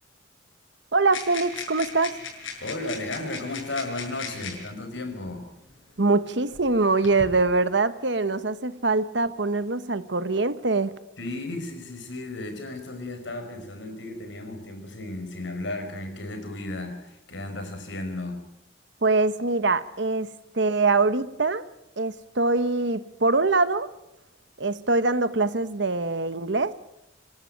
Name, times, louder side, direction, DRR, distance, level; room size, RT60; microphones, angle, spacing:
voice 1, 0.9-2.2 6.0-10.9 19.0-21.7 22.0-23.9 24.6-26.7, right 3 dB, 65° right, 14 dB, 1.1 m, -23 dB
sound 1, 1.1-4.7 5.7-5.8 6.5-7.3, left 5 dB, 90° left, 6.5 m, -37 dB
voice 2, 2.6-5.5 11.2-18.4, left 2 dB, 70° left, 6 dB, 5.1 m, -34 dB
27.0 x 12.5 x 9.1 m, 0.85 s
head